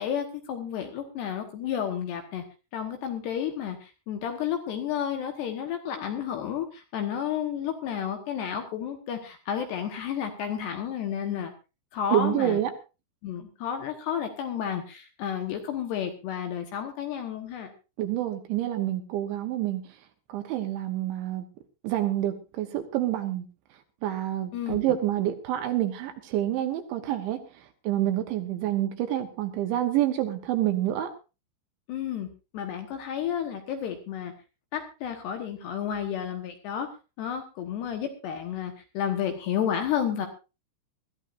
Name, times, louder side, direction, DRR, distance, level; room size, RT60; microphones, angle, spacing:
voice 1, 0.0-2.4 2.7-11.5 11.9-12.6 13.2-17.7 24.5-25.0 31.9-32.3 32.5-34.3 34.7-36.9 37.2-40.3, left 9 dB, 70° left, 5 dB, 2.9 m, -31 dB
voice 2, 12.1-12.7 18.0-19.8 20.3-21.4 21.8-23.5 24.0-31.1, right 12 dB, 75° right, 6 dB, 3.1 m, -28 dB
22.0 x 13.5 x 2.6 m, 0.30 s
omnidirectional pair, 6.0 m